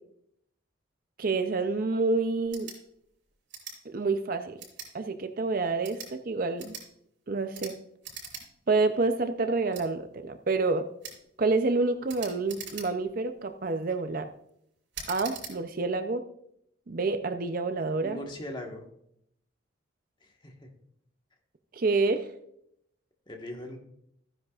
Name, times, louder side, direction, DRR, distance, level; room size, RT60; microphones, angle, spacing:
voice 1, 1.2-2.7 3.9-4.6 4.9-6.8 7.3-7.8 8.7-10.9 11.4-14.3 15.1-16.3 16.9-18.2 21.7-22.3, right 3 dB, 45° right, 8 dB, 0.5 m, -28 dB
sound 1, 2.4-2.8 3.5-3.8 4.6-4.9 5.7-6.1 6.6-6.9 7.5-7.7 8.0-8.4 8.8-8.9 9.7-9.9 11.0-11.2 12.1-13.1 13.7-14.0 14.9-15.5, right 6 dB, 65° right, 4.9 m, -42 dB
voice 2, 18.0-18.8 20.2-20.7 23.3-23.8, left 1 dB, 25° left, 2 dB, 1.3 m, -40 dB
15.0 x 9.8 x 2.4 m, 0.74 s
head